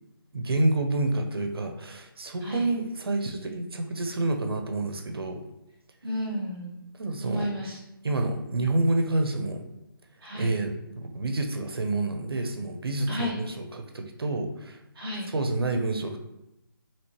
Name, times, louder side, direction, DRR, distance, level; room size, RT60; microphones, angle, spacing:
voice 1, 0.3-5.4 7.0-7.5 8.0-9.7 10.3-14.8 15.3-16.2, right 2 dB, 85° right, 5 dB, 0.6 m, -28 dB
voice 2, 6.0-6.8 7.2-7.8 10.2-10.5 13.1-13.4 14.9-15.3, equal, 10° right, -14 dB, 0.6 m, -32 dB
3.0 x 2.9 x 2.9 m, 0.89 s
hypercardioid pair, 175°, 12 cm